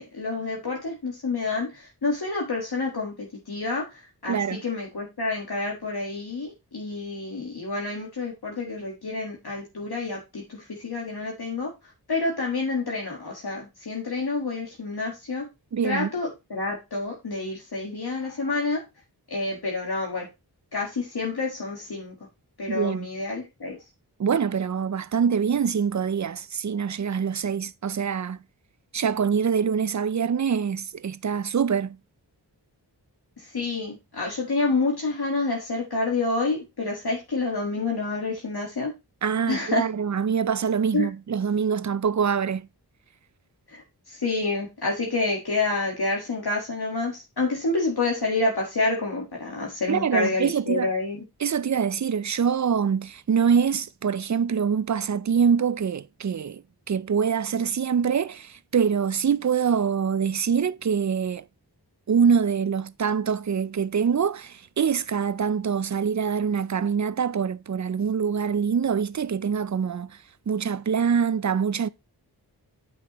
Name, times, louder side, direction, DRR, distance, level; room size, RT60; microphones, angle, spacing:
voice 1, 0.0-15.5 15.8-18.8 19.3-20.3 20.7-22.1 22.6-23.8 33.4-38.9 39.5-39.9 40.9-41.1 43.7-51.2, left 3 dB, 65° left, 1.7 m, -28 dB
voice 2, 4.3-4.6 15.7-16.1 22.7-23.1 24.2-28.4 28.9-32.0 39.2-42.7 49.9-50.9 51.4-61.4 62.1-70.2 70.5-71.9, right 7 dB, 45° right, 0.5 m, -24 dB
9.6 x 5.9 x 3.0 m
wide cardioid pair, 55°, 41 cm